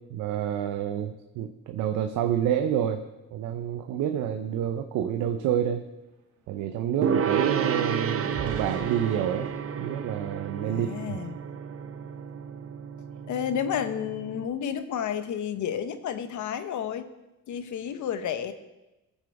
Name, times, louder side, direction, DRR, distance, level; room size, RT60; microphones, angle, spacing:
voice 1, 0.1-3.0 3.3-5.9 6.5-9.5 9.8-11.2, right 9 dB, 90° right, 6 dB, 0.7 m, -28 dB
sound 1, 5.4-5.5 5.7-11.2 11.7-12.0 12.3-12.5, right 5 dB, 70° right, 1.9 m, -47 dB
Gong, 7.0-14.5, right 7 dB, 50° right, 0.8 m, -31 dB
voice 2, 10.6-11.3 13.3-17.1 17.5-18.5, left 8 dB, 75° left, 10 dB, 1.1 m, -31 dB
16.0 x 7.3 x 4.8 m, 1.0 s
cardioid pair, 90°, 30 cm